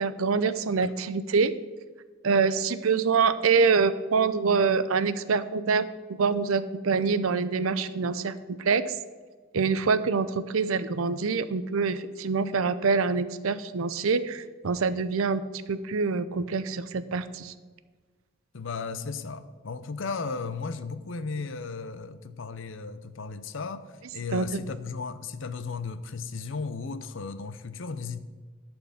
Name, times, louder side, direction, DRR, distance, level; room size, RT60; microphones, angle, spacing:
voice 1, 0.0-1.5 2.2-8.3 8.6-9.0 9.5-15.4 15.7-17.5 24.3-24.5, right 5 dB, 85° right, 14 dB, 0.6 m, -25 dB
voice 2, 18.5-28.2, left 4 dB, 65° left, 12 dB, 0.6 m, -35 dB
11.5 x 4.4 x 7.0 m, 1.4 s
head